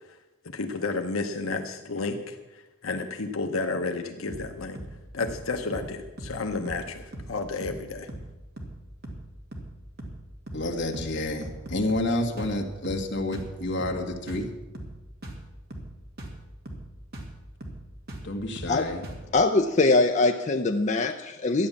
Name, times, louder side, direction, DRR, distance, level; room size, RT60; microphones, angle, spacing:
voice 1, 0.4-4.8 5.1-8.1, left 3 dB, 80° left, 5 dB, 0.9 m, -31 dB
sound 1, 4.3-4.5 4.8-5.0 5.2-5.4 5.7-5.9 6.2-6.4 6.7-6.9 7.1-7.3 7.6-7.8 8.1-8.3 8.6-8.8 9.0-9.3 9.5-9.7 10.0-10.2 10.5-10.7 10.9-11.2 11.4-12.1 12.4-12.6 12.8-13.1 13.3-13.5 13.8-14.0 14.3-14.5 14.7-15.0 15.2-15.4 15.7-15.9 16.2-16.4 16.7-16.9 17.1-17.3 17.6-17.8 18.1-18.3 18.6-18.8 19.0-19.3, right 1 dB, 50° right, 2.3 m, -39 dB
voice 2, 10.5-14.5 18.2-19.0, left 1 dB, 60° left, 3 dB, 1.7 m, -29 dB
voice 3, 19.3-21.7, left 3 dB, 35° left, 5 dB, 0.6 m, -22 dB
13.0 x 9.7 x 7.2 m, 1.1 s
head